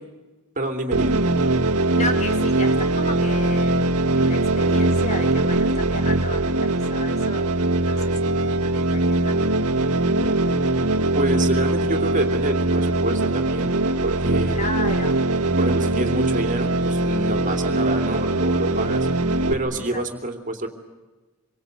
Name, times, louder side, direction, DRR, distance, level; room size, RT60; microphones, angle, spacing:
voice 1, 0.6-1.3 11.1-13.7 14.0-14.6 15.6-19.1 19.5-20.7, right 1 dB, 35° right, 5 dB, 3.0 m, -27 dB
sound 1, 0.9-19.5, right 2 dB, 85° right, 1.8 m, -21 dB
voice 2, 1.9-3.8 4.1-7.5 7.8-9.5 14.5-15.2 19.7-20.1, left 2 dB, 35° left, 6 dB, 2.3 m, -34 dB
26.5 x 24.5 x 8.1 m, 1.2 s
head